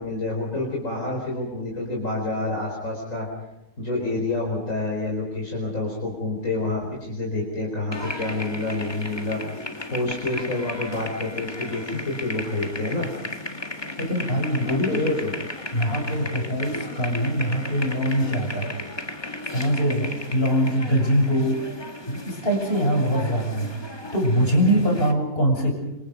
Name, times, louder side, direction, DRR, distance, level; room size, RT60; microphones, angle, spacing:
voice 1, 0.0-3.3 3.8-13.1 14.6-15.3, left 2 dB, 55° left, -2 dB, 5.2 m, -28 dB
sound 1, 7.9-25.1, left 2 dB, 15° left, 1.8 m, -35 dB
voice 2, 14.0-15.2 15.7-18.7 19.5-21.6 22.1-23.8 24.1-25.7, equal, 40° left, 1 dB, 7.0 m, -23 dB
27.0 x 26.5 x 5.4 m, 0.90 s
omnidirectional pair, 1.6 m